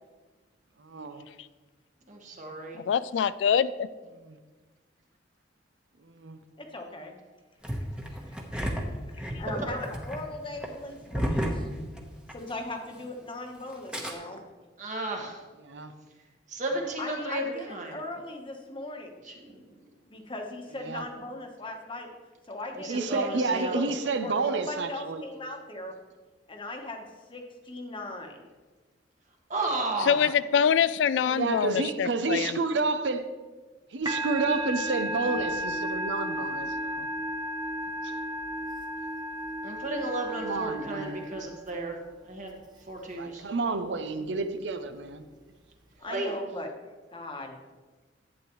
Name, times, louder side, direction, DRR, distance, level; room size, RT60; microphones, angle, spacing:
voice 1, 0.8-1.3 4.3-4.4 6.2-6.4 15.6-15.9 20.8-21.1 22.9-25.2 30.2-30.3 31.3-33.3 33.9-37.1 38.0-38.1 40.3-41.3 43.2-45.2, right 3 dB, 75° right, 9 dB, 0.6 m, -30 dB
voice 2, 2.1-2.8 14.8-15.4 16.5-17.4 17.7-18.0 19.2-19.6 22.7-23.8 29.5-30.2 39.6-41.9 42.2-42.5 42.9-43.5 46.0-46.3, right 2 dB, 45° right, 1 dB, 1.5 m, -33 dB
voice 3, 2.9-3.9 30.0-32.6, left 7 dB, 80° left, 16 dB, 0.3 m, -24 dB
voice 4, 6.6-7.1 8.1-11.7 12.3-14.4 17.0-19.1 20.1-22.1 22.5-25.9 26.5-28.5 46.0-46.7 47.1-47.6, left 2 dB, 30° left, 3 dB, 1.1 m, -39 dB
Engine starting, 7.6-12.5 12.8-12.9 13.7-14.1, equal, 5° right, 1.1 m, -32 dB
Musical instrument, 34.1-41.7, equal, 25° right, 1.1 m, -33 dB
11.5 x 8.5 x 3.1 m, 1.3 s
head